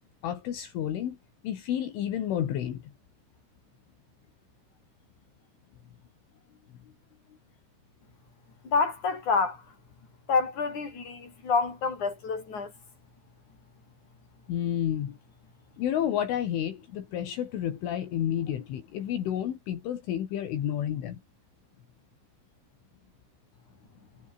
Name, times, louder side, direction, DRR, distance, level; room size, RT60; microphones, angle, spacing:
voice 1, 0.2-1.2 1.4-2.8 14.5-15.2 15.8-21.2, left 10 dB, 70° left, 5.0 m, -30 dB
voice 2, 8.6-9.6 10.3-12.7, left 4 dB, 35° left, 7.9 m, -28 dB
omnidirectional pair, 5.9 m